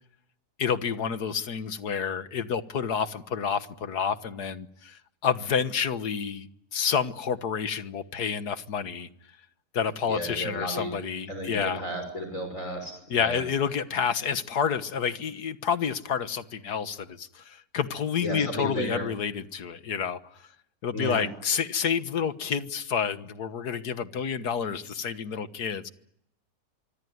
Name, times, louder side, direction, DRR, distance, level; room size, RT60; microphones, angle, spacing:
voice 1, 0.6-9.1 9.7-11.8 13.1-20.2 20.8-25.9, left 7 dB, 75° left, 1.9 m, -29 dB
voice 2, 10.1-10.9 11.3-13.4 18.2-19.1 20.9-21.3, equal, 50° left, 6.3 m, -33 dB
25.5 x 24.0 x 9.5 m
omnidirectional pair, 1.7 m